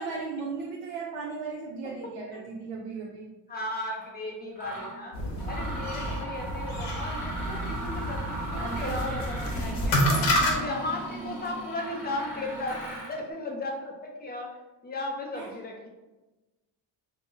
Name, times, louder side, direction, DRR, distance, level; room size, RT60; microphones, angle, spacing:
voice 1, 0.0-3.3 8.5-9.0 10.1-10.3 15.3-15.5, right 4 dB, 65° right, -4 dB, 0.5 m, -36 dB
voice 2, 3.5-5.1 5.4-10.0 10.4-12.8 13.1-14.5 14.8-15.9, left 2 dB, 25° left, 0 dB, 0.4 m, -35 dB
Mechanisms, 3.9-4.1 4.6-4.9 5.4-13.2, right 2 dB, 5° right, 1.0 m, -38 dB
sound 1, 5.1-10.5, equal, 75° left, 0.8 m, -29 dB
2.5 x 2.0 x 3.7 m, 1.1 s
cardioid pair, 140°, 43 cm